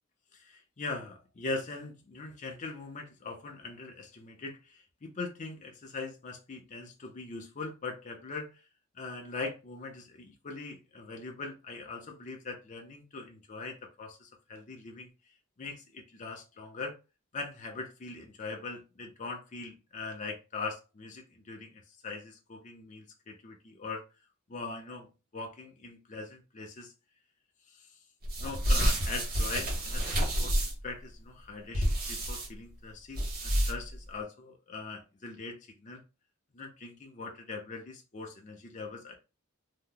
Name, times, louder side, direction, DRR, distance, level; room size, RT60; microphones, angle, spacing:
voice 1, 0.3-8.7 8.9-17.0 17.3-24.0 24.5-26.9 27.7-28.0 28.4-36.0 36.5-39.2, left 3 dB, 35° left, 1 dB, 0.5 m, -41 dB
sound 1, 28.2-30.9 31.7-32.5 33.1-34.0, equal, 45° right, 1.0 m, -29 dB
2.8 x 2.1 x 3.7 m, 0.29 s
head